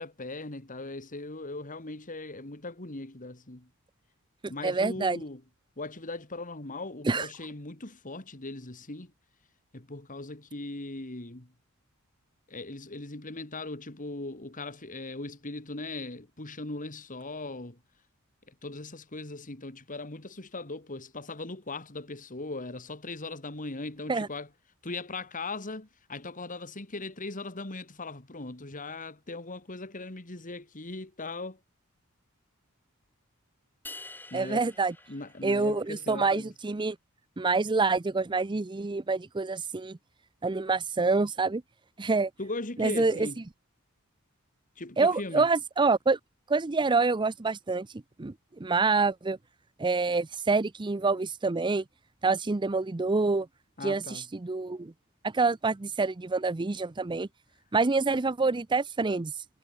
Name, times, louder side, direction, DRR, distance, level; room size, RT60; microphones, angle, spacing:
voice 1, 0.0-3.7 4.5-5.4 5.8-9.1 9.7-11.5 12.5-17.8 18.5-24.5 24.8-31.6 34.3-34.7 35.1-36.5 42.4-43.4 44.8-45.5 53.8-54.3, left 2 dB, 35° left, 2.3 m, -39 dB
voice 2, 4.6-5.2 7.0-7.3 24.1-24.3 34.3-34.9 35.4-37.0 37.4-40.0 40.4-41.6 42.0-42.3 42.8-43.3 45.0-46.2 46.5-47.9 48.2-49.4 49.8-51.8 52.2-53.5 53.8-54.9 55.2-57.3 57.7-59.3, right 3 dB, 20° right, 0.5 m, -27 dB
sound 1, 33.8-36.1, left 2 dB, 10° left, 2.4 m, -47 dB
head